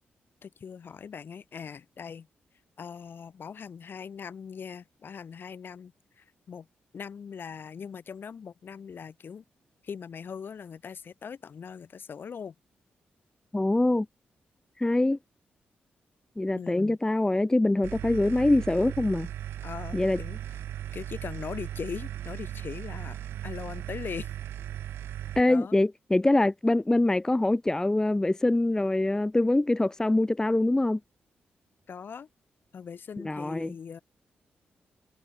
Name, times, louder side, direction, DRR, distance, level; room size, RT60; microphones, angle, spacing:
voice 1, 0.4-2.3 2.8-6.7 6.9-9.4 9.8-12.5 16.5-17.0 19.6-20.4 20.9-24.3 25.5-25.8 31.9-32.3 32.7-34.0, left 6 dB, 60° left, 1.5 m, -40 dB
voice 2, 13.5-14.1 14.8-15.2 16.4-19.3 19.9-20.2 25.4-31.0 33.2-33.7, left 2 dB, 15° left, 0.4 m, -24 dB
sound 1, 17.8-25.4, right 11 dB, 85° right, 0.4 m, -37 dB
supercardioid pair, 55°, 4 cm